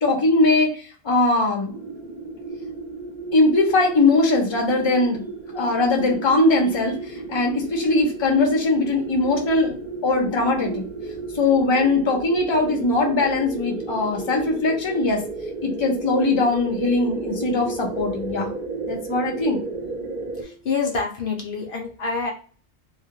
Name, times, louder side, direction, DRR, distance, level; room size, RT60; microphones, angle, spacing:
voice 1, 0.0-0.7 1.0-1.7 3.3-5.2 5.5-9.7 10.0-10.8 11.3-15.2 15.6-18.5 18.9-19.6, left 2 dB, 30° left, 1 dB, 0.6 m, -20 dB
sound 1, 1.7-20.4, right 3 dB, 50° right, 0.8 m, -33 dB
voice 2, 20.3-22.3, left 4 dB, 65° left, 0 dB, 0.7 m, -27 dB
2.3 x 2.1 x 2.8 m, 0.41 s
omnidirectional pair, 1.0 m